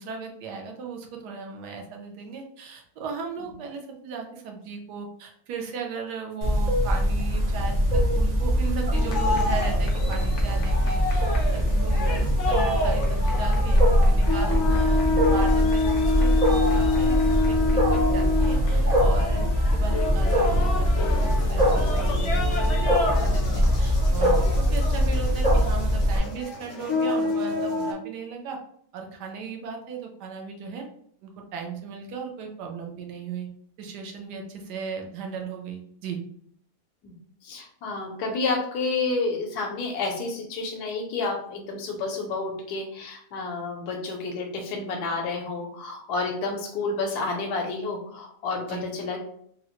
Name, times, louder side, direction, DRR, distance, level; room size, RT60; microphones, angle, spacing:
voice 1, 0.0-11.3 11.5-19.5 19.7-28.6 28.9-30.9 31.2-33.5 33.8-36.2 48.7-48.9, right 5 dB, 90° right, 2 dB, 1.2 m, -37 dB
Wild animals, 6.4-26.2, equal, 55° right, 0.4 m, -22 dB
sound 1, 8.9-27.9, left 3 dB, 65° left, 0.7 m, -28 dB
voice 2, 37.4-49.2, left 3 dB, 80° left, 2 dB, 1.2 m, -30 dB
3.7 x 2.0 x 2.9 m, 0.65 s
omnidirectional pair, 1.7 m